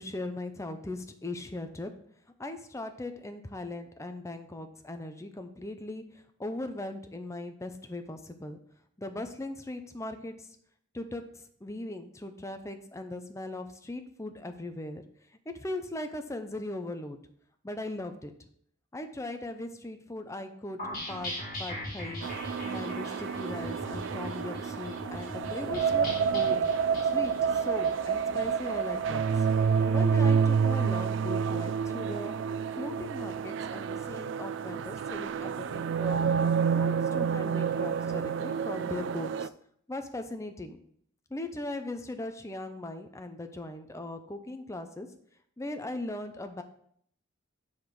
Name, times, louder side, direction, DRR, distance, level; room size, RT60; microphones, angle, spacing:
voice 1, 0.0-1.9 2.4-8.6 9.0-10.6 10.9-15.0 15.5-17.2 17.6-18.3 18.9-20.8 21.1-22.3 22.6-26.6 27.0-29.5 29.9-32.3 32.7-36.3 36.7-39.5 39.9-40.8 41.3-45.1 45.6-46.6, left 2 dB, 15° left, 7 dB, 0.6 m, -39 dB
sound 1, 20.8-30.2, left 1 dB, 45° left, 2.8 m, -41 dB
sound 2, 22.2-39.5, right 6 dB, 65° right, 0.3 m, -29 dB
9.5 x 3.5 x 6.0 m, 0.66 s
head